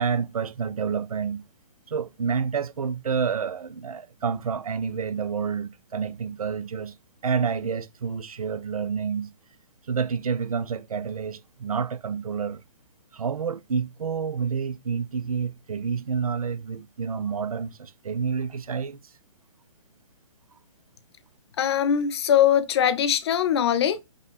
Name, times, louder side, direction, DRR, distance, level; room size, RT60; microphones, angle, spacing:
voice 1, 0.0-1.4 1.9-6.9 7.2-9.3 9.9-12.6 13.1-19.0, right 6 dB, 85° right, 0.5 m, -29 dB
voice 2, 21.6-24.0, left 9 dB, 50° left, 0.6 m, -21 dB
5.3 x 2.2 x 3.5 m
hypercardioid pair, 135°, 18 cm